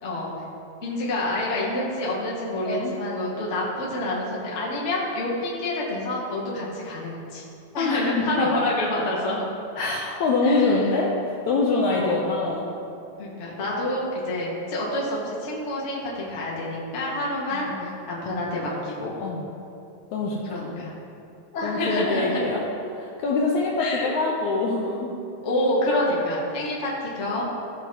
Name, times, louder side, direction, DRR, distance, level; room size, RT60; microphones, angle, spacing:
voice 1, 0.8-7.4 7.7-9.4 10.4-10.9 11.9-12.3 13.2-19.1 20.5-20.9 21.5-22.4 23.8-24.1 25.4-27.4, left 1 dB, 35° left, -5 dB, 1.2 m, -28 dB
voice 2, 2.6-2.9 7.8-8.6 9.8-12.7 17.5-17.9 19.2-19.5 20.1-20.7 21.6-22.7 22.9-25.2, left 3 dB, 75° left, -2 dB, 1.8 m, -25 dB
15.5 x 5.8 x 2.9 m, 2.7 s
omnidirectional pair, 3.9 m